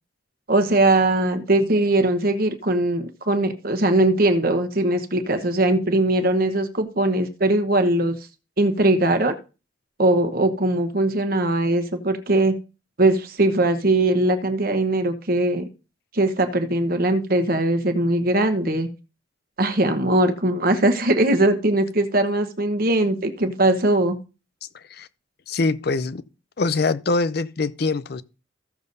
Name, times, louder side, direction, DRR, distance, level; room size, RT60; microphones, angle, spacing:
voice 1, 0.5-8.2 8.6-9.3 10.0-12.5 13.0-15.6 16.1-18.9 19.6-24.2, right 1 dB, 45° right, 1.0 m, -20 dB
voice 2, 24.7-25.1 25.5-26.2 26.6-28.2, left 3 dB, 50° left, 0.5 m, -24 dB
15.0 x 6.9 x 2.7 m
head